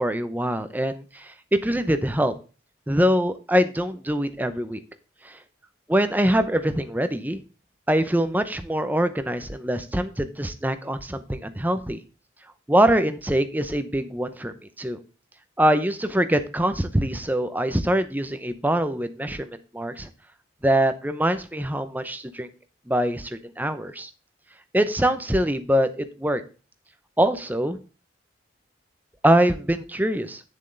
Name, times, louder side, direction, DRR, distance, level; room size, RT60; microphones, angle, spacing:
voice 1, 0.0-2.3 2.9-4.8 5.2-5.4 5.9-7.4 7.9-12.0 12.7-15.0 15.6-20.1 20.6-22.5 22.9-24.1 24.7-26.4 27.2-27.8 29.2-30.4, right 1 dB, 10° right, 10 dB, 0.7 m, -23 dB
8.7 x 7.3 x 3.9 m, 0.34 s
head